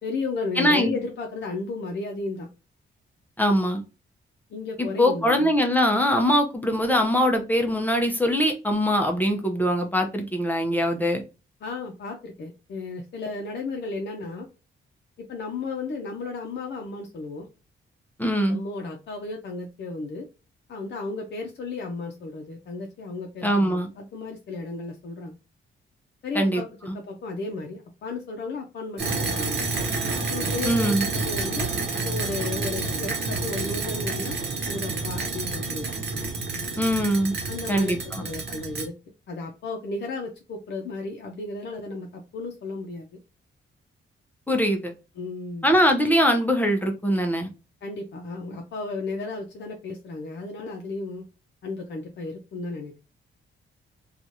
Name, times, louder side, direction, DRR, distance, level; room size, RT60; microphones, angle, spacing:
voice 1, 0.0-2.5 4.5-5.5 11.6-14.5 15.2-17.5 18.5-20.3 20.7-25.4 26.2-26.6 26.9-29.7 30.3-30.9 31.2-31.7 32.0-34.4 34.7-36.0 37.5-38.9 39.3-43.2 45.2-45.7 47.8-51.3 51.6-52.9, left 3 dB, 60° left, 1 dB, 0.6 m, -34 dB
voice 2, 0.6-1.0 3.4-3.8 4.8-11.2 18.2-18.6 23.4-23.9 26.3-26.6 30.6-31.0 36.8-37.3 37.7-38.2 44.5-44.9 45.6-47.5, equal, 10° left, 3 dB, 0.6 m, -22 dB
sound 1, 29.0-38.9, right 3 dB, 55° right, 0.9 m, -29 dB
3.0 x 2.3 x 2.6 m, 0.30 s
cardioid pair, 125°, 21 cm